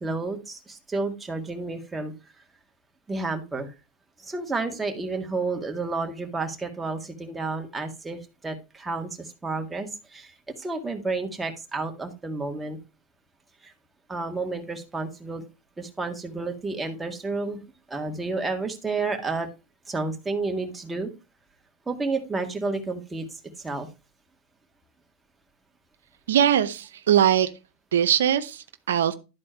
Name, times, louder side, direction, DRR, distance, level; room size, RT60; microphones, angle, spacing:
voice 1, 0.0-2.1 3.1-3.7 4.2-8.2 8.4-10.3 10.6-12.8 13.6-13.7 14.1-15.4 15.8-17.6 17.9-19.5 19.9-21.1 21.9-23.2 23.6-23.9, right 3 dB, 10° right, 1.9 m, -30 dB
voice 2, 26.3-27.5 27.9-29.1, right 10 dB, 90° right, 0.7 m, -21 dB
12.0 x 4.3 x 4.5 m
hypercardioid pair, 115°, 0 cm